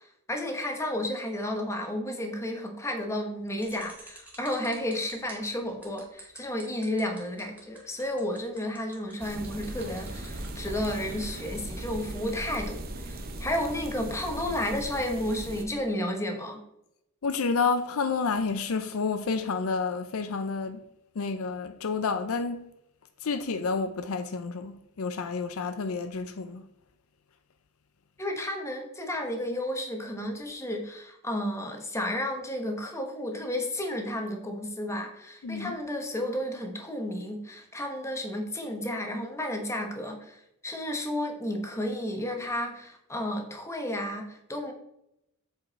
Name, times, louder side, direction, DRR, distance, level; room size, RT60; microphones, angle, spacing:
voice 1, 0.0-16.6 28.2-44.7, left 1 dB, 15° left, 1.1 m, -32 dB
sound 1, 3.6-10.5, right 1 dB, 5° right, 1.9 m, -49 dB
sound 2, 9.2-15.6, right 1 dB, 40° right, 0.8 m, -38 dB
voice 2, 17.2-20.8 21.2-22.7 23.2-26.6 35.4-35.8, left 4 dB, 65° left, 0.5 m, -30 dB
7.8 x 4.7 x 4.2 m
head